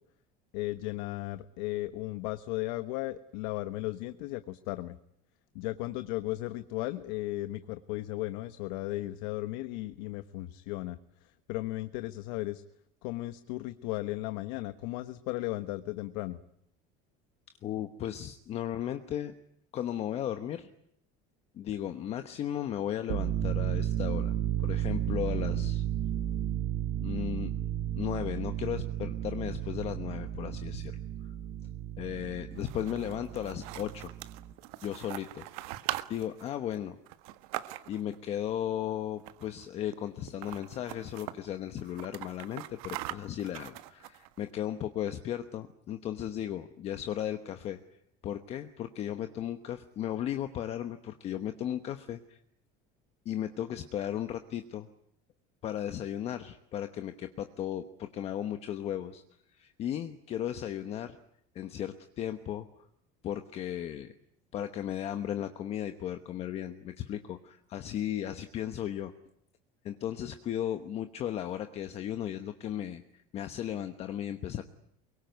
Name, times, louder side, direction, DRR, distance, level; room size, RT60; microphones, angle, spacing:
voice 1, 0.5-5.0 5.5-12.6 13.0-16.4, left 18 dB, 75° left, 12 dB, 1.2 m, -36 dB
voice 2, 17.6-19.3 19.7-20.7 21.5-24.3 24.6-25.8 27.0-27.5 28.0-31.0 31.2-31.3 32.0-34.1 34.8-35.7 36.1-37.0 37.9-52.4 53.2-54.9 55.6-59.2 59.5-61.2 61.5-62.7 63.2-64.1 64.5-69.1 69.8-74.6, left 11 dB, 35° left, 8 dB, 1.1 m, -36 dB
sound 1, 23.0-34.5, right 11 dB, 50° right, 2.1 m, -33 dB
sound 2, 32.5-38.2 39.2-39.6 39.9-40.0 40.3-41.4 41.8-44.4, right 16 dB, 80° right, 1.6 m, -41 dB
24.0 x 22.5 x 9.3 m, 0.72 s
cardioid pair, 175°, 19 cm